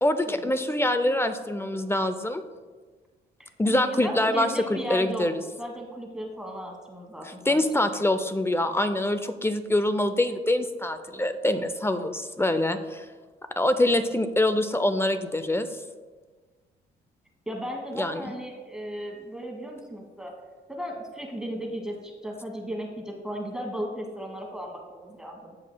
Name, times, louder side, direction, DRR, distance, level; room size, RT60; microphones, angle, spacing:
voice 1, 0.0-2.4 3.6-5.3 7.2-13.1 13.6-15.7 18.0-18.3, left 1 dB, 10° left, 9 dB, 0.5 m, -25 dB
voice 2, 3.4-5.3 5.6-7.9 17.5-20.3 20.7-25.6, equal, 5° right, 0 dB, 1.4 m, -36 dB
16.0 x 5.4 x 2.2 m, 1.4 s
cardioid pair, 90°, 20 cm